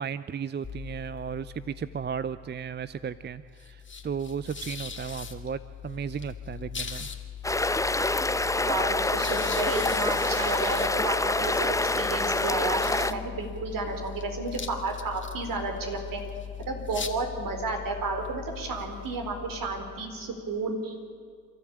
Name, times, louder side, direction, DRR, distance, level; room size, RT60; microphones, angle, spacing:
voice 1, 0.0-7.1, right 7 dB, 30° right, 15 dB, 0.6 m, -35 dB
sound 1, 0.6-20.5, left 7 dB, 30° left, 2.4 m, -40 dB
sound 2, 7.4-13.1, left 2 dB, 10° left, 0.7 m, -26 dB
voice 2, 8.7-11.7 11.9-16.2 16.7-21.1, right 3 dB, 60° right, 4 dB, 4.4 m, -32 dB
29.5 x 13.0 x 8.8 m, 2.2 s
hypercardioid pair, 55°, 37 cm